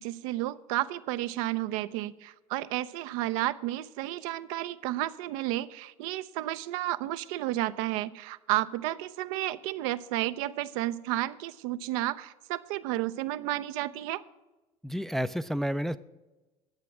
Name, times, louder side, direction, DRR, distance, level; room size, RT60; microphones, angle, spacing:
voice 1, 0.0-14.2, right 15 dB, 70° right, 13 dB, 0.5 m, -32 dB
voice 2, 14.8-16.0, equal, ahead, 11 dB, 0.4 m, -30 dB
10.5 x 7.5 x 6.0 m, 1.1 s
hypercardioid pair, 75°, 18 cm